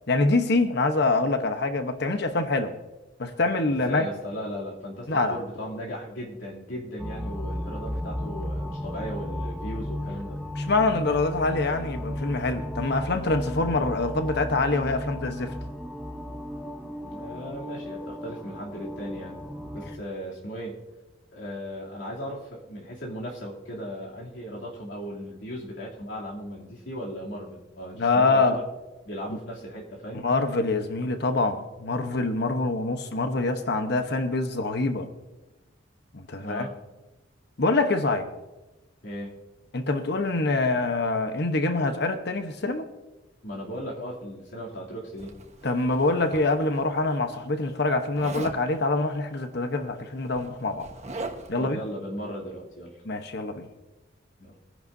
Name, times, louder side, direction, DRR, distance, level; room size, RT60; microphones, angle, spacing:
voice 1, 0.1-2.7 3.2-4.1 5.1-5.4 10.6-15.5 28.0-28.6 29.3-29.4 30.1-35.1 36.1-36.7 37.6-38.3 39.7-42.9 45.6-50.9 51.5-51.8 53.1-53.7, left 3 dB, 60° left, 1.0 m, -25 dB
voice 2, 3.7-10.4 17.0-19.4 19.7-20.8 21.3-28.6 29.0-30.2 36.4-36.7 39.0-39.3 43.4-45.3 51.6-53.0 54.4-54.5, equal, 80° left, 2.9 m, -37 dB
sound 1, 7.0-20.0, equal, ahead, 1.0 m, -34 dB
Zipper (clothing), 45.2-46.8 48.1-48.6 49.8-49.9 50.2-51.6, right 2 dB, 35° right, 1.2 m, -39 dB
22.0 x 10.5 x 2.7 m
head